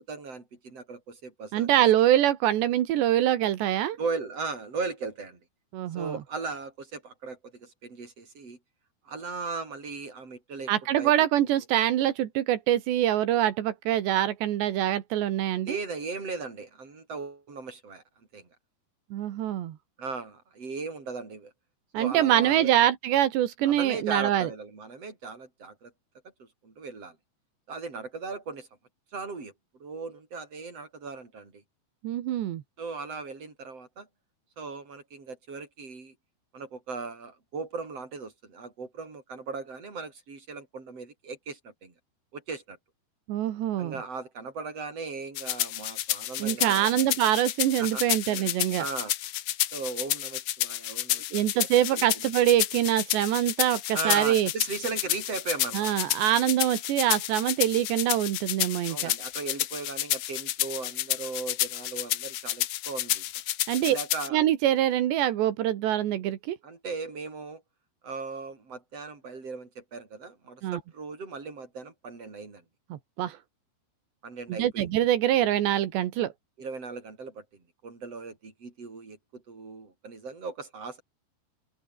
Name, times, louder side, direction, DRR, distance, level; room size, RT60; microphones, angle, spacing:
voice 1, 0.1-1.8 4.0-5.4 5.9-8.6 9.1-10.7 11.0-11.1 15.6-18.0 18.3-18.5 20.0-21.5 21.9-22.7 23.6-25.9 26.4-27.2 27.7-28.7 29.1-29.5 29.8-31.6 32.8-34.1 34.6-36.2 36.5-41.9 42.3-42.8 43.8-47.2 47.8-49.1 49.7-51.5 51.7-52.2 53.9-55.9 58.9-63.2 63.8-64.4 66.6-67.6 68.0-72.6 74.2-74.9 76.6-81.0, right 4 dB, 35° right, 7.0 m, -37 dB
voice 2, 1.5-4.0 5.7-6.2 10.7-15.8 19.1-19.8 21.9-24.5 32.0-32.6 43.3-44.0 46.4-48.8 51.3-54.5 55.7-59.1 63.7-64.0 64.3-66.6 70.6-70.8 72.9-73.4 74.5-76.3, right 12 dB, 85° right, 3.9 m, -24 dB
sound 1, 45.3-64.3, left 14 dB, 80° left, 1.7 m, -30 dB
omnidirectional pair, 5.0 m